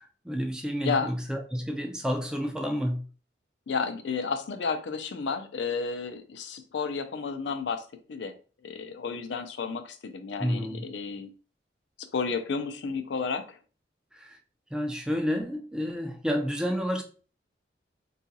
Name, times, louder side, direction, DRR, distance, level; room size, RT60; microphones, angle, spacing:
voice 1, 0.0-3.1 10.4-10.8 14.1-14.4 14.7-17.0, equal, 5° right, 0.3 m, -30 dB
voice 2, 3.7-8.3 8.6-11.3 12.0-13.6, left 5 dB, 80° left, 0.4 m, -32 dB
3.7 x 2.3 x 2.7 m
head